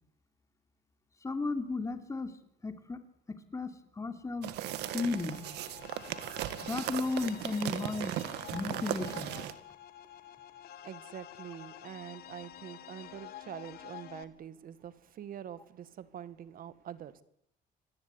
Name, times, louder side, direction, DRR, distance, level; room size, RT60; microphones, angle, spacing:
voice 1, 1.2-2.3 2.6-3.0 3.5-4.5 4.9-5.4 6.6-8.1 8.5-9.3, left 3 dB, 20° left, 8 dB, 3.2 m, -34 dB
sound 1, 4.4-9.5, right 13 dB, 85° right, 1.9 m, -37 dB
sound 2, 4.6-14.2, left 11 dB, 70° left, 2.0 m, -49 dB
voice 2, 10.8-17.2, right 9 dB, 55° right, 14 dB, 1.9 m, -45 dB
26.0 x 19.0 x 9.9 m, 0.73 s
cardioid pair, 110°, 17 cm